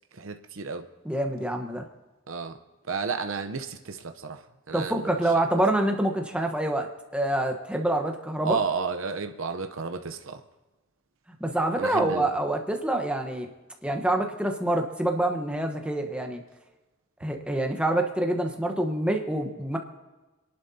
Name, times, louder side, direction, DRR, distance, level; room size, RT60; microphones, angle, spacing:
voice 1, 0.1-0.9 2.3-2.6 2.9-4.4 4.7-5.1 8.4-10.4 11.8-12.3, right 4 dB, 70° right, 7 dB, 0.8 m, -32 dB
voice 2, 1.0-1.8 4.7-6.9 7.1-8.6 11.4-13.5 13.8-16.4 17.2-19.8, right 1 dB, 5° right, 3 dB, 1.1 m, -26 dB
26.5 x 11.5 x 2.8 m, 1.1 s
head